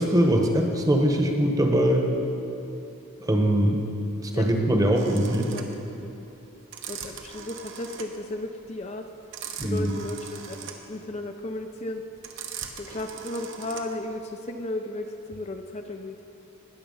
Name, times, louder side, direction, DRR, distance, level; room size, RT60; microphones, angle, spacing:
voice 1, 0.0-2.1 3.2-3.8 4.2-5.5 9.6-9.9, right 1 dB, 15° right, 2 dB, 1.0 m, -22 dB
sound 1, 4.9-14.1, right 7 dB, 60° right, 1.0 m, -40 dB
voice 2, 6.9-9.1 9.6-10.6 10.9-12.0 12.8-16.2, left 2 dB, 30° left, 5 dB, 0.4 m, -34 dB
19.5 x 7.0 x 5.5 m, 2.9 s
head